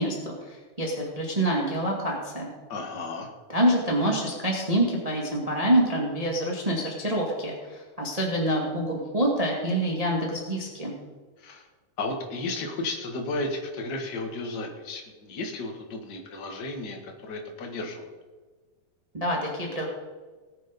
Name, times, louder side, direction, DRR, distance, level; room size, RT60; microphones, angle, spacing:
voice 1, 0.0-2.5 3.5-10.9 19.2-19.8, right 1 dB, 50° right, -2 dB, 0.4 m, -26 dB
voice 2, 2.7-3.3 11.4-11.7 12.0-18.1, left 2 dB, 65° left, 2 dB, 1.0 m, -33 dB
19.0 x 7.5 x 5.3 m, 1.3 s
omnidirectional pair, 4.7 m